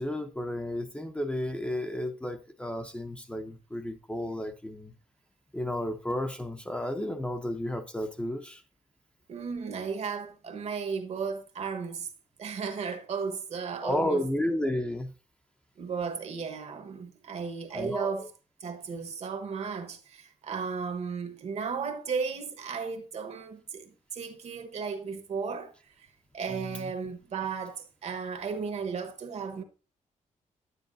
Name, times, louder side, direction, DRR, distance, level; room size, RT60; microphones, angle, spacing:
voice 1, 0.0-4.9 5.5-8.6 13.8-15.1 17.7-18.3 26.5-26.9, left 1 dB, 10° left, 0.6 m, -32 dB
voice 2, 9.3-12.1 12.4-14.2 15.8-18.3 18.6-26.1 26.3-29.6, right 5 dB, 60° right, 1.2 m, -35 dB
9.9 x 9.4 x 2.6 m
wide cardioid pair, 140°, 13 cm